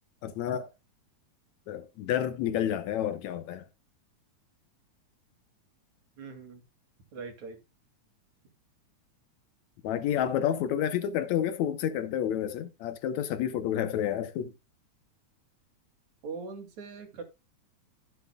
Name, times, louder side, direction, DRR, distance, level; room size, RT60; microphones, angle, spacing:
voice 1, 0.2-0.7 1.7-3.7 9.8-14.5, left 10 dB, 75° left, 2.1 m, -30 dB
voice 2, 6.2-6.6 7.1-7.6 16.2-17.2, right 4 dB, 65° right, 3.6 m, -41 dB
15.0 x 8.1 x 2.2 m
omnidirectional pair, 3.4 m